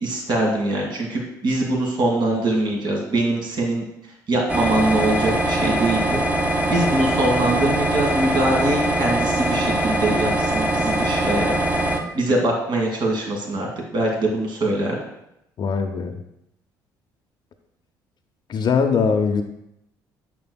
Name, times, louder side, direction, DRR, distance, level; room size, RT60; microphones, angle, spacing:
voice 1, 0.0-3.8 4.3-6.2 6.7-11.6 12.1-13.7 13.9-15.0, right 1 dB, 50° right, 0 dB, 2.0 m, -23 dB
sound 1, 4.5-12.0, right 1 dB, 15° right, 1.3 m, -22 dB
voice 2, 15.6-16.2 18.5-19.4, left 5 dB, 45° left, 4 dB, 0.7 m, -21 dB
8.4 x 6.7 x 2.3 m, 0.81 s
hypercardioid pair, 55°, 10 cm